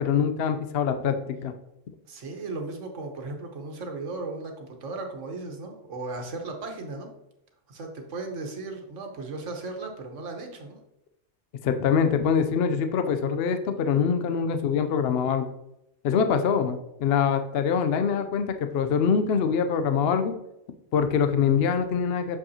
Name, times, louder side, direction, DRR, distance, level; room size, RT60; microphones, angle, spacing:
voice 1, 0.0-1.5 11.6-15.5 16.0-20.3 20.9-22.4, left 6 dB, 65° left, 8 dB, 0.7 m, -24 dB
voice 2, 2.1-7.1 7.7-10.8, right 3 dB, 70° right, 3 dB, 1.4 m, -36 dB
7.2 x 5.2 x 2.8 m, 0.84 s
omnidirectional pair, 1.3 m